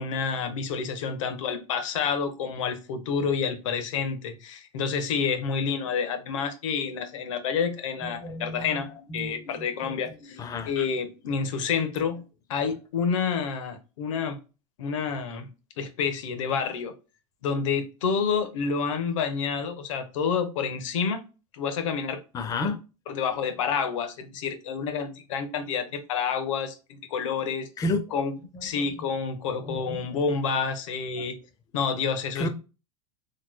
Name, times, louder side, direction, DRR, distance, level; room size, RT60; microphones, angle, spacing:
voice 1, 0.0-10.4 10.7-12.2 12.5-14.4 14.8-15.5 15.8-16.9 17.4-21.2 21.5-22.2 23.1-27.7 28.1-28.3 28.6-31.3 31.7-32.5, left 6 dB, 85° left, 1.0 m, -29 dB
voice 2, 8.0-8.8 9.1-10.0 10.2-10.7 22.3-22.8 27.8-28.2 28.7-29.1 29.6-30.1 31.2-31.3 32.3-32.5, left 2 dB, 20° left, 0.6 m, -32 dB
4.0 x 3.2 x 2.2 m
supercardioid pair, 145°, 16 cm